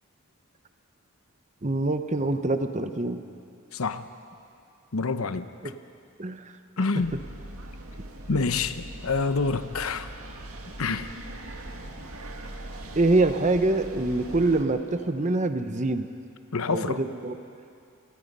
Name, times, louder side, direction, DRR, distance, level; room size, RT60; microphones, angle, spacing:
voice 1, 1.6-3.2 5.6-5.8 6.2-6.5 8.3-8.5 12.9-16.1 16.7-17.4, right 2 dB, 35° right, 8 dB, 0.9 m, -25 dB
voice 2, 3.7-4.1 4.9-5.5 6.8-7.2 8.3-10.1 10.8-11.1 16.5-17.0, left 4 dB, 75° left, 11 dB, 0.8 m, -27 dB
sound 1, 7.0-14.6, right 1 dB, 75° right, 1.9 m, -41 dB
28.5 x 19.0 x 5.5 m, 2.5 s
head